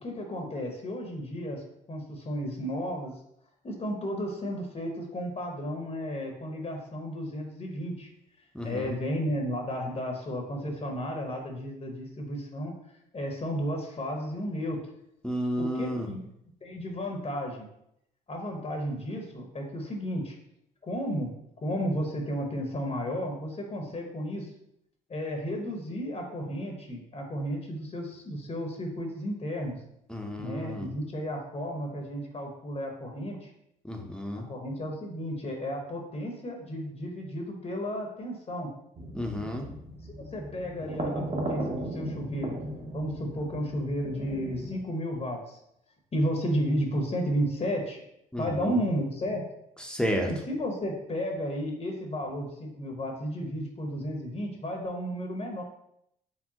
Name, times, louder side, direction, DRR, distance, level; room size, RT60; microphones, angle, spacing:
voice 1, 0.0-3.2 3.6-8.1 8.6-12.7 13.1-14.8 15.6-16.3 16.6-17.7 18.3-20.3 20.8-21.3 21.6-24.5 25.1-29.8 30.4-33.5 34.5-38.7 40.3-42.6 42.9-45.6 46.1-48.0 48.4-49.4 50.3-55.6, equal, 35° left, 2 dB, 1.0 m, -33 dB
voice 2, 8.5-9.0 15.2-16.1 30.1-30.9 33.8-34.4 39.1-39.6 48.3-48.8 49.9-50.3, equal, 5° left, 1 dB, 0.8 m, -31 dB
sound 1, 39.0-44.8, right 1 dB, 30° right, 1.0 m, -36 dB
4.7 x 3.4 x 2.9 m, 0.77 s
supercardioid pair, 65°, 19 cm